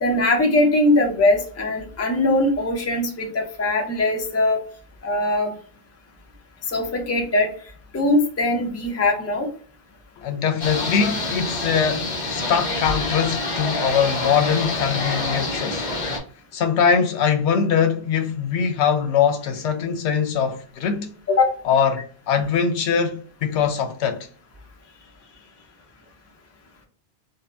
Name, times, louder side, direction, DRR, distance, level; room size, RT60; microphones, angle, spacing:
voice 1, 0.0-4.6 5.0-5.5 6.7-7.5 7.9-9.5 21.3-21.6, left 2 dB, 20° left, 0.5 m, -21 dB
voice 2, 10.2-15.9 16.5-21.1 21.6-24.3, left 7 dB, 80° left, 0.9 m, -22 dB
sound 1, 10.6-16.2, left 2 dB, 45° left, 0.8 m, -26 dB
2.7 x 2.1 x 3.2 m
omnidirectional pair, 1.1 m